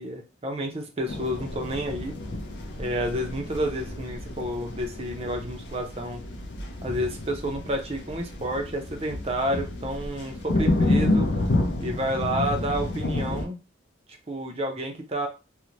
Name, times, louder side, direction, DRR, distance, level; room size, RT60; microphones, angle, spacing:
voice 1, 0.0-2.2 2.8-6.2 6.8-11.3 11.8-13.6 14.3-15.3, equal, 30° right, 3 dB, 0.5 m, -30 dB
sound 1, 1.1-13.5, left 2 dB, 70° left, 0.5 m, -29 dB
2.5 x 2.0 x 3.0 m, 0.29 s
head